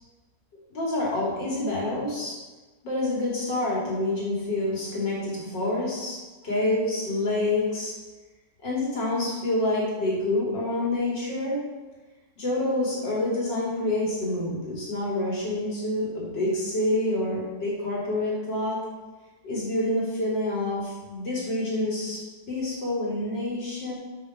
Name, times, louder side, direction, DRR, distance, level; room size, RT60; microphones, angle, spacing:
voice 1, 0.7-2.4 2.8-7.9 8.6-11.6 12.4-18.8 19.4-22.2 22.5-23.9, left 1 dB, 80° left, -6 dB, 3.4 m, -27 dB
7.4 x 5.8 x 5.9 m, 1.2 s
omnidirectional pair, 1.9 m